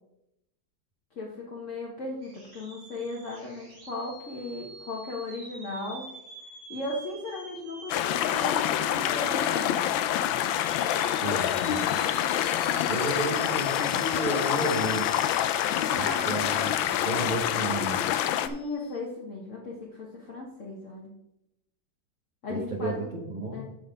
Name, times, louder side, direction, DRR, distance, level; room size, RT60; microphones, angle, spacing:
voice 1, 1.1-6.0 6.7-9.8 15.9-16.4 18.4-21.1 22.4-23.1 23.5-23.6, left 2 dB, 45° left, -3 dB, 1.5 m, -36 dB
sound 1, 2.2-19.0, right 1 dB, 80° right, 3.5 m, -47 dB
sound 2, 7.9-18.5, left 11 dB, 90° left, 1.4 m, -26 dB
voice 2, 11.2-11.9 12.9-15.1 15.9-18.0 22.5-23.6, right 2 dB, 30° right, -1 dB, 1.0 m, -32 dB
12.5 x 4.2 x 5.1 m, 0.87 s
omnidirectional pair, 2.1 m